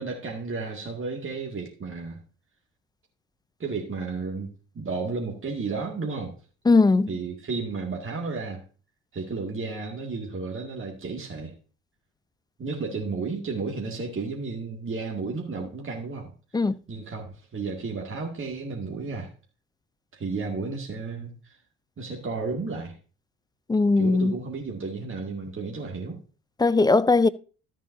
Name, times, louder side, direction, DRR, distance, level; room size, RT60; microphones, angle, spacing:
voice 1, 0.0-2.2 3.6-6.4 7.1-8.6 9.1-11.5 12.6-16.3 16.9-19.3 20.1-21.6 22.0-23.0 24.0-26.2, right 4 dB, 35° right, 2.3 m, -33 dB
voice 2, 6.7-7.1 16.5-16.8 23.7-24.3 26.6-27.3, left 3 dB, 10° left, 0.4 m, -19 dB
13.5 x 7.5 x 2.7 m
hypercardioid pair, 55°, 36 cm